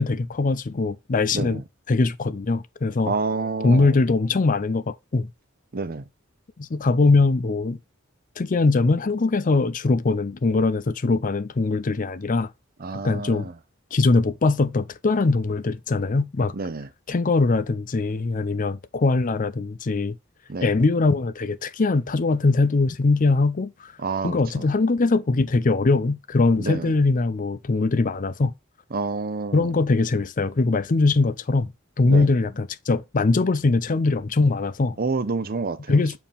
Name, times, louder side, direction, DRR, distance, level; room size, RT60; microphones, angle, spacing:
voice 1, 0.0-1.6 1.9-3.1 3.6-5.3 6.6-7.8 8.4-12.5 12.9-13.5 13.9-16.5 17.1-20.1 20.6-23.9 24.2-28.5 29.5-31.7 32.0-35.0 35.9-36.2, left 3 dB, 40° left, 0.5 m, -21 dB
voice 2, 1.3-1.6 3.1-4.0 5.7-6.0 12.8-13.5 16.5-16.9 20.5-20.7 24.0-24.7 26.6-26.9 28.9-29.7 32.1-32.3 35.0-36.0, right 4 dB, 45° right, 0.7 m, -29 dB
7.3 x 4.4 x 3.5 m
head